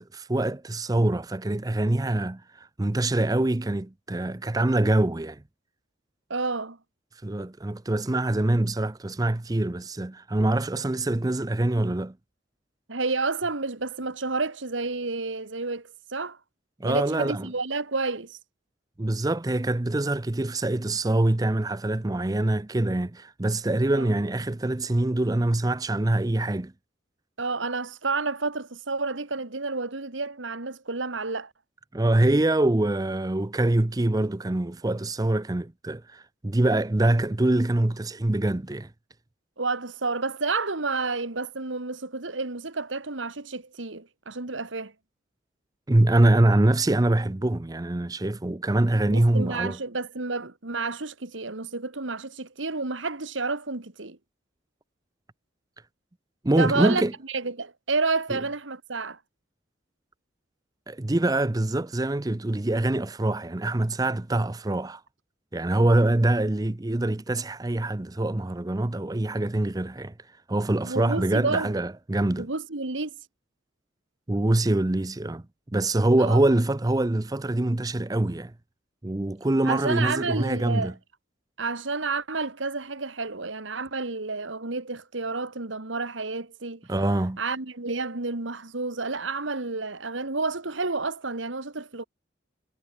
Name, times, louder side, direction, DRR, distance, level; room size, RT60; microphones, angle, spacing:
voice 1, 0.0-5.4 7.2-12.1 16.8-17.5 19.0-26.7 31.9-38.9 45.9-49.8 56.4-57.1 58.3-58.4 60.9-65.0 65.5-70.1 70.5-72.5 74.3-75.4 75.7-78.5 79.0-80.9 86.9-87.4, right 1 dB, 20° right, 0.6 m, -24 dB
voice 2, 6.3-6.8 12.9-16.4 16.8-18.4 24.0-24.1 27.4-31.5 39.6-44.9 49.1-54.2 56.6-57.0 57.3-59.2 70.8-71.7 72.4-73.1 76.2-76.4 79.7-80.9 81.6-86.8 87.4-92.1, right 3 dB, 80° right, 2.0 m, -30 dB
head